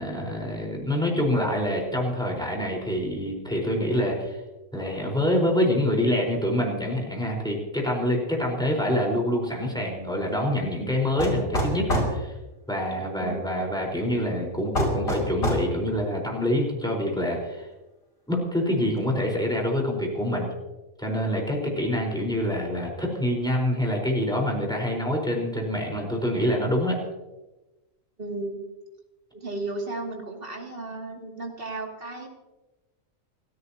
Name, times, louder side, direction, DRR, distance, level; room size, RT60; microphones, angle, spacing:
voice 1, 0.0-4.4 4.7-12.3 12.7-17.7 18.3-20.5 21.0-27.0, left 1 dB, 5° left, 0 dB, 4.5 m, -26 dB
sound 1, 11.2-12.1 14.7-15.7, equal, 75° left, 5.9 m, -25 dB
voice 2, 28.2-28.6 29.3-32.3, right 2 dB, 40° right, 0 dB, 2.8 m, -34 dB
29.5 x 13.5 x 2.9 m, 1.1 s
omnidirectional pair, 1.4 m